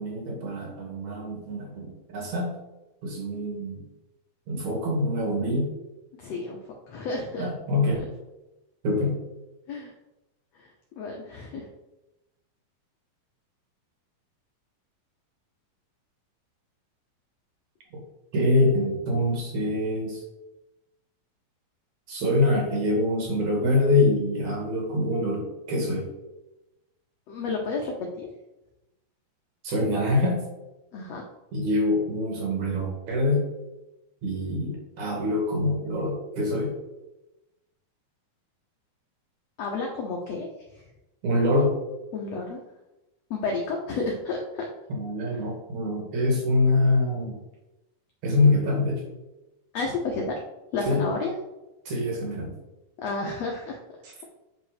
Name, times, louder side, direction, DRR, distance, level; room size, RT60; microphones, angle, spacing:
voice 1, 0.0-2.5 3.0-3.8 4.5-5.7 7.4-8.0 8.8-9.2 17.9-18.0 18.3-20.2 22.1-26.1 29.6-30.4 31.5-33.4 34.2-36.7 41.2-41.7 44.9-47.3 48.2-49.0 50.9-51.1 51.9-52.5 54.0-54.3, left 2 dB, 55° right, 0 dB, 2.9 m, -25 dB
voice 2, 6.2-6.6 6.9-7.5 9.7-9.9 10.6-10.7 11.0-11.7 27.3-28.3 30.9-31.2 39.6-40.5 40.8-40.9 42.1-42.6 43.3-44.6 45.3-45.5 49.7-50.4 50.7-51.3 53.0-53.8, left 3 dB, 75° left, 0 dB, 1.5 m, -31 dB
8.3 x 5.0 x 5.1 m, 0.98 s
omnidirectional pair, 4.3 m